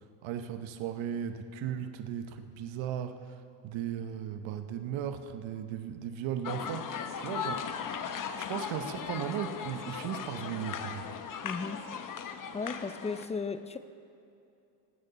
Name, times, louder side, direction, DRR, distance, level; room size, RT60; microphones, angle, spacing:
voice 1, 0.2-3.3 3.6-7.9 8.4-11.1, right 9 dB, 75° right, 8 dB, 0.9 m, -36 dB
sound 1, 6.4-13.3, left 7 dB, 45° left, 0.9 m, -38 dB
voice 2, 11.4-11.9 12.5-13.8, left 4 dB, 15° left, 11 dB, 0.4 m, -35 dB
19.0 x 9.2 x 4.0 m, 2.7 s
cardioid pair, 100°, 46 cm